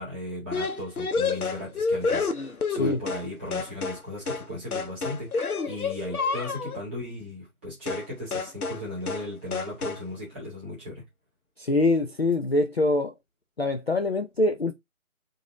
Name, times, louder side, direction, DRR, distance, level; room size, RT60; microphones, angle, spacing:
voice 1, 0.0-11.0, left 1 dB, 10° right, 1.0 m, -37 dB
sound 1, 0.5-3.3 3.5-4.0 4.3-4.5 4.7-6.8 7.9-8.1 8.3-8.8 9.1-9.3 9.5-10.0, left 4 dB, 85° left, 0.9 m, -29 dB
voice 2, 11.6-13.1 13.6-14.7, left 2 dB, 45° left, 0.4 m, -24 dB
3.9 x 2.6 x 3.5 m
figure-of-eight pair, 160°, 43 cm